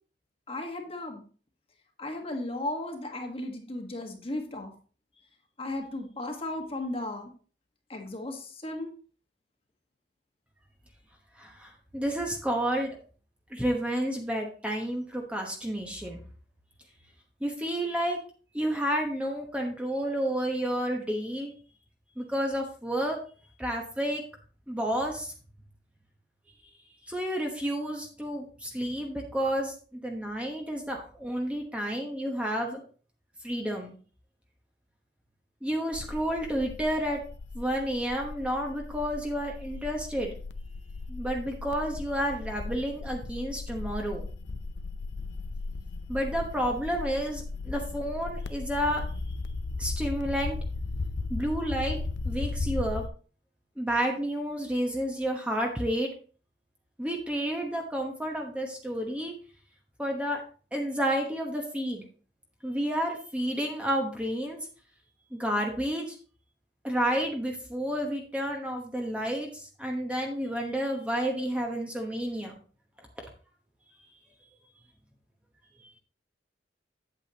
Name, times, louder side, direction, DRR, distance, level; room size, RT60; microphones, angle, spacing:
voice 1, 0.5-1.2 2.0-4.7 5.6-7.3 7.9-8.9, left 1 dB, 30° left, 3 dB, 1.4 m, -35 dB
voice 2, 11.4-13.0 13.5-16.2 17.4-18.2 18.5-21.5 22.2-23.2 23.6-24.2 24.7-25.3 27.1-32.8 33.4-33.9 35.6-37.2 37.5-40.4 41.1-44.2 46.1-49.0 49.8-50.6 51.3-52.0 52.2-53.0 53.8-56.1 57.0-59.3 60.0-60.4 60.7-62.0 62.6-64.7 65.3-66.2 66.8-72.6, equal, 5° right, 1 dB, 1.0 m, -30 dB
sound 1, 35.9-53.1, left 3 dB, 75° left, 0.6 m, -36 dB
8.4 x 8.4 x 2.9 m, 0.40 s
head